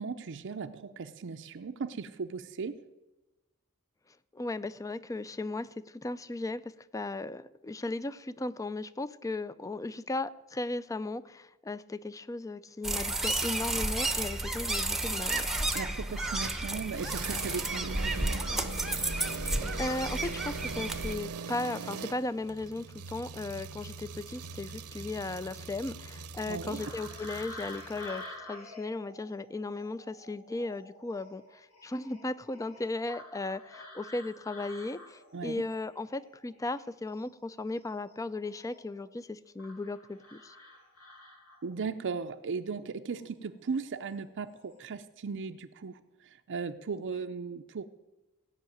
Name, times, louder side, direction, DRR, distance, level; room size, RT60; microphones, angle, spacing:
voice 1, 0.0-2.8 15.7-18.6 26.5-26.9 35.3-35.6 41.6-47.8, right 5 dB, 55° right, 6 dB, 0.5 m, -37 dB
voice 2, 4.3-15.7 19.4-40.6, left 2 dB, 15° left, 16 dB, 0.4 m, -36 dB
sound 1, 12.8-21.1, right 2 dB, ahead, 0.8 m, -32 dB
sound 2, 16.4-28.2, right 5 dB, 85° right, 0.8 m, -42 dB
sound 3, 26.8-36.8 37.1-39.1 39.6-41.9 43.0-43.3 43.7-44.2 44.5-44.8, left 1 dB, 70° left, 2.9 m, -49 dB
16.5 x 5.6 x 9.1 m, 1.1 s
head